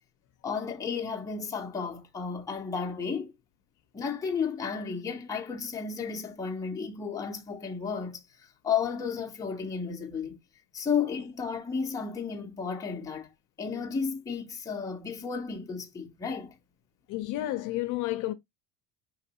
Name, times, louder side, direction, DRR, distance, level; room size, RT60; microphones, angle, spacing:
voice 1, 0.4-3.3 3.9-8.2 8.6-10.4 10.7-13.3 13.6-16.6, left 6 dB, 10° left, 0.5 m, -33 dB
voice 2, 17.1-18.3, left 16 dB, 60° left, 0.5 m, -31 dB
5.8 x 3.0 x 2.7 m
cardioid pair, 155°, 36 cm